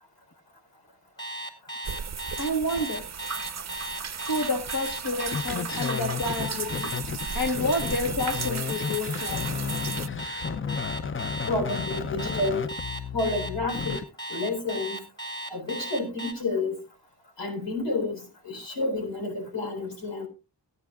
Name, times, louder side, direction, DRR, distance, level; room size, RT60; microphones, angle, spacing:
Alarm, 1.2-16.3, right 1 dB, 10° left, 2.2 m, -36 dB
sound 1, 1.8-10.1, right 6 dB, 40° right, 0.6 m, -36 dB
voice 1, 2.4-3.1 4.3-7.0 7.3-9.4, left 1 dB, 50° left, 1.4 m, -29 dB
sound 2, 5.3-14.0, left 6 dB, 30° left, 0.5 m, -33 dB
voice 2, 11.5-12.7 13.1-14.0 14.3-15.0 15.5-16.8 17.4-20.3, left 2 dB, 75° left, 3.9 m, -30 dB
18.0 x 9.4 x 2.4 m
cardioid pair, 60°, 43 cm